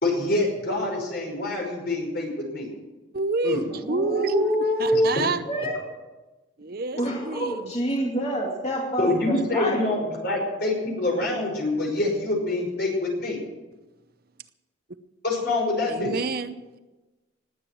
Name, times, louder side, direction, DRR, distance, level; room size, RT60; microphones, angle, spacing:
voice 1, 0.0-2.7 3.4-3.6 4.9-5.0 9.0-13.4 15.2-16.1, left 2 dB, 50° left, 0 dB, 5.4 m, -26 dB
voice 2, 3.1-5.4 6.6-7.7 15.9-16.8, right 3 dB, 50° right, 11 dB, 0.7 m, -28 dB
voice 3, 3.8-5.1 5.4-5.8 6.9-9.8, equal, 30° left, -2 dB, 2.4 m, -26 dB
19.0 x 8.8 x 7.7 m, 1.1 s
head